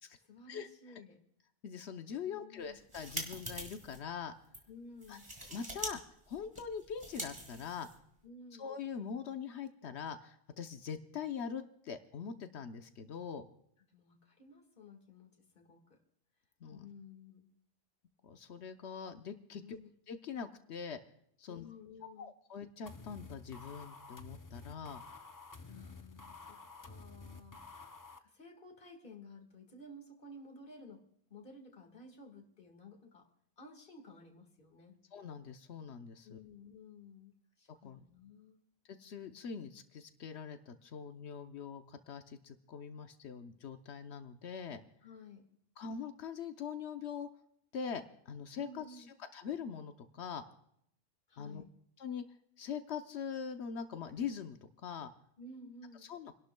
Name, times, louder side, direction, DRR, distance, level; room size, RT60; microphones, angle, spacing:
voice 1, 0.2-1.2 2.2-2.8 4.7-5.3 8.2-8.7 13.9-16.0 16.7-17.5 19.6-19.9 21.5-22.3 25.6-33.3 33.6-35.0 36.2-38.6 45.0-45.5 48.6-49.1 51.3-51.8 55.4-56.1, left 2 dB, 55° left, 4 dB, 2.0 m, -54 dB
voice 2, 1.6-4.3 5.1-5.2 5.5-6.0 6.3-7.9 8.6-13.5 16.6-16.9 18.2-19.8 20.1-21.0 21.4-21.6 22.2-25.0 35.1-36.4 37.8-38.0 38.9-44.8 45.8-47.3 47.7-49.1 49.3-50.4 51.4-51.6 52.0-52.2 52.6-55.1 56.0-56.3, left 7 dB, 85° left, 8 dB, 1.1 m, -43 dB
sound 1, 2.7-4.0 4.4-4.6 5.0-5.9 6.2-8.2, right 1 dB, 25° right, 2.4 m, -44 dB
sound 2, 22.9-28.2, left 4 dB, 25° left, 0.5 m, -51 dB
29.5 x 11.5 x 2.2 m, 0.69 s
omnidirectional pair, 1.1 m